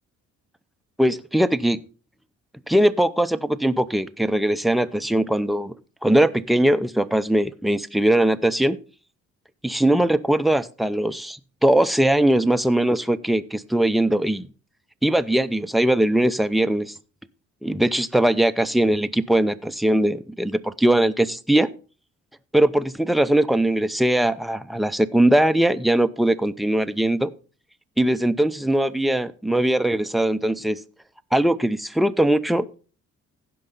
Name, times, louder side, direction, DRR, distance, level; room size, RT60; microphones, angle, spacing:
voice 1, 1.0-1.8 2.7-5.7 6.0-8.8 9.6-14.5 15.0-17.0 17.6-21.7 22.5-27.3 28.0-30.8 31.3-32.7, right 1 dB, ahead, 11 dB, 0.6 m, -20 dB
15.5 x 5.4 x 3.9 m, 0.37 s
cardioid pair, 90°, 30 cm